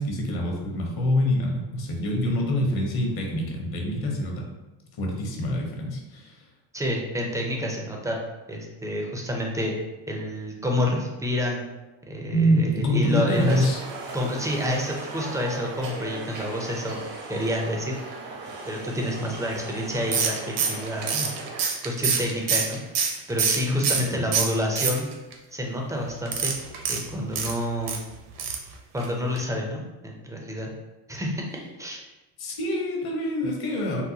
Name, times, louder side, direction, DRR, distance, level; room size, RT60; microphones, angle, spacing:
voice 1, 0.0-4.5 5.0-6.4 12.3-13.8 23.7-24.2 32.4-34.0, equal, 50° left, 0 dB, 0.9 m, -25 dB
voice 2, 6.7-8.2 8.5-9.7 10.1-11.6 12.1-13.7 14.1-17.0 17.3-18.0 18.6-21.4 21.8-22.8 23.3-25.1 25.5-26.5 26.9-28.0 28.9-30.7 31.1-31.4 31.8-32.0, equal, 5° right, 0 dB, 0.4 m, -28 dB
sound 1, 13.3-21.6, right 3 dB, 75° right, 1.0 m, -37 dB
sound 2, 20.1-24.1 24.3-25.3 26.3-28.0 28.4-28.7 29.0-29.1 29.4-29.5, right 6 dB, 55° right, 0.7 m, -25 dB
3.9 x 2.1 x 2.7 m, 1.1 s
supercardioid pair, 100°, 48 cm